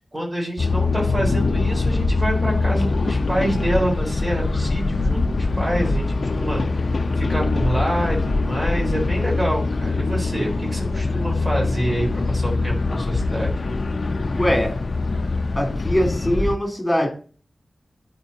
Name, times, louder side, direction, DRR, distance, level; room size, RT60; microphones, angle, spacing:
voice 1, 0.1-13.5, right 1 dB, 25° right, -2 dB, 4.0 m, -27 dB
sound 1, 0.6-16.6, left 3 dB, 65° left, 0.6 m, -23 dB
voice 2, 14.3-14.7 15.5-17.1, equal, 15° left, 1 dB, 3.1 m, -22 dB
11.5 x 4.6 x 2.7 m, 0.39 s
wide cardioid pair, 80°, 0 cm